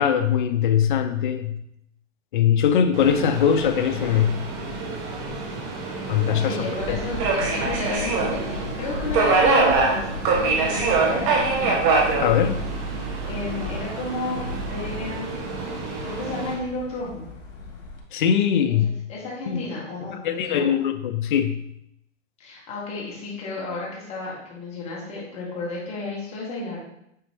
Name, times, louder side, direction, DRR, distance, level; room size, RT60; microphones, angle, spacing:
voice 1, 0.0-1.6 2.3-4.5 6.1-6.6 6.9-7.0 12.2-12.7 18.1-19.0 19.5-19.6 20.2-21.6, left 8 dB, 40° left, 9 dB, 0.6 m, -21 dB
Subway metro underground, 2.9-16.5, right 3 dB, 25° right, 1.0 m, -25 dB
voice 2, 6.3-11.8 13.3-15.4 16.0-17.2 18.7-18.8 19.1-20.7 22.4-26.8, left 3 dB, 15° left, -4 dB, 1.7 m, -32 dB
sound 1, 6.8-18.0, left 1 dB, 75° left, 2.3 m, -36 dB
8.8 x 4.0 x 3.4 m, 0.78 s
hypercardioid pair, 155°, 38 cm